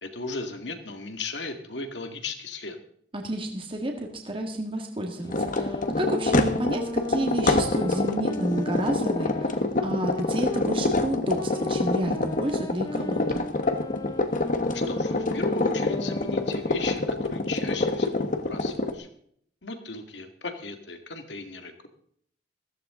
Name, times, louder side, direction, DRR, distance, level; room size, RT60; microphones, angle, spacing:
voice 1, 0.0-2.8 14.7-19.1 19.6-21.9, left 3 dB, 80° left, 6 dB, 2.0 m, -36 dB
voice 2, 3.1-13.4, right 1 dB, 30° right, 3 dB, 1.8 m, -30 dB
sound 1, 5.2-10.7 11.3-16.7, left 2 dB, 25° left, 0.6 m, -37 dB
sound 2, 5.3-18.9, left 2 dB, 50° left, 1.2 m, -26 dB
15.0 x 14.5 x 3.8 m, 0.64 s
head